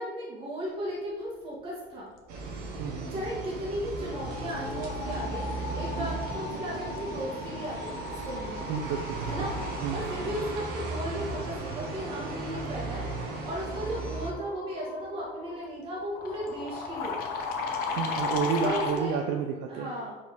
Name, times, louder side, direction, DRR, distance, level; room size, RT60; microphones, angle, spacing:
voice 1, 0.0-2.1 3.0-8.7 9.2-17.2 18.4-19.2 19.7-20.2, equal, 30° right, -5 dB, 1.6 m, -36 dB
sound 1, 2.3-14.3, right 3 dB, 55° right, 1.2 m, -36 dB
voice 2, 2.8-3.1 6.0-6.1 8.7-9.5 9.8-10.0 18.0-19.9, right 7 dB, 75° right, 4 dB, 0.6 m, -31 dB
sound 2, 3.3-3.6 3.8-19.1, left 4 dB, 55° left, 0.9 m, -37 dB
5.0 x 4.2 x 5.2 m, 1.2 s
cardioid pair, 170°, 18 cm